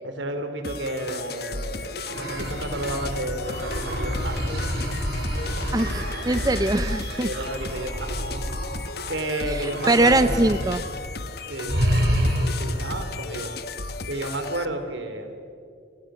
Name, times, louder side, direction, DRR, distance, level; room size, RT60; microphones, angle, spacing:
voice 1, 0.0-4.7 7.2-8.4 9.1-10.4 11.5-11.8 12.6-13.5 14.1-15.3, right 1 dB, 80° right, 6 dB, 3.6 m, -32 dB
sound 1, 0.6-14.7, left 3 dB, 55° left, 1.3 m, -35 dB
sound 2, 2.0-9.2 9.6-10.9 11.1-11.3 11.7-12.8, equal, 60° right, 6.0 m, -28 dB
voice 2, 5.7-7.3 9.5-10.8, right 2 dB, 20° right, 11 dB, 0.6 m, -22 dB
30.0 x 27.5 x 6.4 m, 2.4 s
head